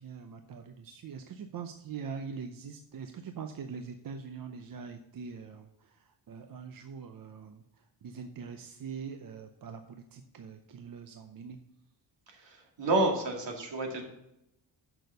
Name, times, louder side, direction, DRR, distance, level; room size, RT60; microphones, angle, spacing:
voice 1, 0.0-7.6 8.0-11.6, right 6 dB, 50° right, 7 dB, 0.7 m, -43 dB
voice 2, 12.3-14.0, right 2 dB, 70° right, 2 dB, 2.3 m, -30 dB
6.8 x 6.1 x 6.6 m, 0.82 s
cardioid pair, 120°, 45 cm